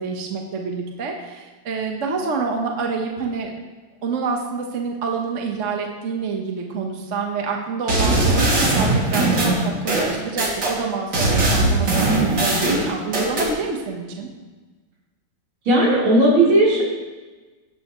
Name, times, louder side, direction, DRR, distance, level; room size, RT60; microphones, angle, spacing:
voice 1, 0.0-3.5 4.0-14.3, right 4 dB, 40° right, 1 dB, 1.4 m, -27 dB
sound 1, 7.9-10.7 11.1-13.5, right 2 dB, 60° right, 3.2 m, -19 dB
voice 2, 15.7-16.8, right 1 dB, 75° right, -6 dB, 4.8 m, -15 dB
17.5 x 11.0 x 3.1 m, 1.3 s
omnidirectional pair, 2.3 m